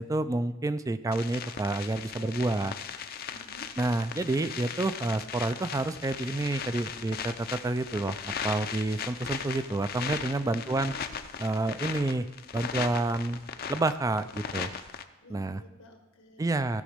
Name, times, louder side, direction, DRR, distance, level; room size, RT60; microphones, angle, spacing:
voice 1, 0.0-2.7 3.8-8.2 8.4-10.9 11.4-12.3 12.5-13.4 13.7-14.7 15.3-15.6 16.4-16.8, right 2 dB, 15° right, 12 dB, 0.3 m, -29 dB
sound 1, 1.1-15.0, left 7 dB, 45° left, 0.5 m, -38 dB
voice 2, 2.2-2.7 3.2-3.7 10.5-11.2 15.2-16.7, left 1 dB, 90° left, 3 dB, 1.6 m, -52 dB
15.5 x 5.2 x 5.0 m, 0.99 s
head